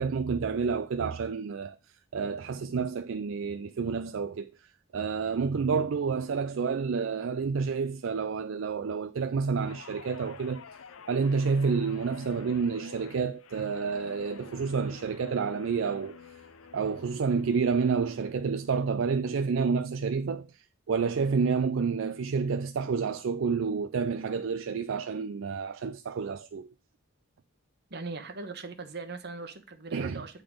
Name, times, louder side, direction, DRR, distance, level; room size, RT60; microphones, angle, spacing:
voice 1, 0.0-1.8 2.1-10.6 11.1-16.4 16.7-26.7 29.9-30.2, right 5 dB, 70° right, 0.4 m, -29 dB
Guitar, 9.6-18.2 18.6-18.9, left 6 dB, 85° left, 0.6 m, -49 dB
voice 2, 27.9-30.4, right 3 dB, 55° right, 1.1 m, -40 dB
8.7 x 3.9 x 5.0 m
head